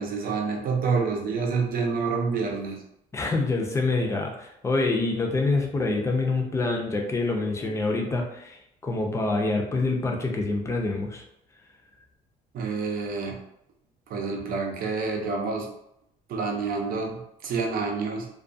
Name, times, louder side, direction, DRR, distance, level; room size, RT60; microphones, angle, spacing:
voice 1, 0.0-2.8 12.5-13.4 14.1-15.7 16.3-18.3, right 4 dB, 60° right, 1 dB, 0.6 m, -28 dB
voice 2, 3.1-11.2, left 3 dB, 15° left, 1 dB, 0.5 m, -26 dB
2.3 x 2.3 x 2.5 m, 0.78 s
cardioid pair, 110°, 17 cm